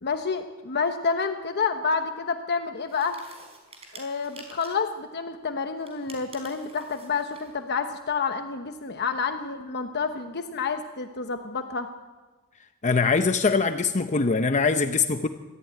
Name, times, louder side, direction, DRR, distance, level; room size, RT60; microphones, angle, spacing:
voice 1, 0.0-3.2 3.9-11.9, left 5 dB, 50° left, 6 dB, 1.0 m, -29 dB
sound 1, 2.9-4.9 5.8-7.6, right 3 dB, 30° right, 4.6 m, -49 dB
voice 2, 12.8-15.3, left 4 dB, 35° left, 9 dB, 0.7 m, -22 dB
24.0 x 14.0 x 9.3 m, 1.3 s
head